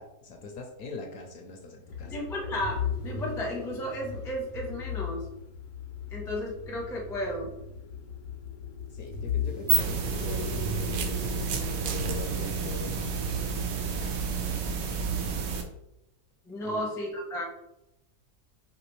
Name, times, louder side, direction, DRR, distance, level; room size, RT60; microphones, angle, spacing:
voice 1, 0.0-2.2 8.9-11.3 11.9-14.1 16.6-16.8, left 3 dB, 70° left, 2 dB, 0.9 m, -43 dB
sound 1, 1.9-14.1, left 6 dB, 85° left, 1.3 m, -37 dB
voice 2, 2.1-5.3 6.1-7.5 16.5-17.4, equal, 5° left, -2 dB, 0.3 m, -33 dB
sound 2, 9.0-9.2 10.2-12.2, right 7 dB, 70° right, 0.9 m, -37 dB
sound 3, 9.5-15.6, right 6 dB, 85° right, 1.3 m, -30 dB
5.0 x 2.9 x 3.1 m, 0.86 s
omnidirectional pair, 1.9 m